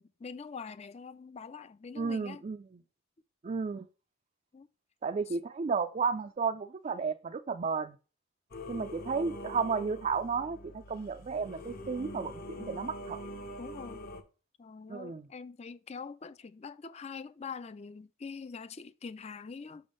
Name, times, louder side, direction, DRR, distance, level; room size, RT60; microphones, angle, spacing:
voice 1, 0.0-2.4 4.5-4.7 13.6-14.1 14.6-19.8, left 5 dB, 30° left, 0.4 m, -44 dB
voice 2, 1.9-2.8 3.4-3.9 5.0-8.0 8.7-13.2 14.9-15.3, right 5 dB, 35° right, 0.3 m, -33 dB
Singing / Musical instrument, 8.5-14.2, equal, 45° left, 0.9 m, -44 dB
6.1 x 3.5 x 5.2 m
head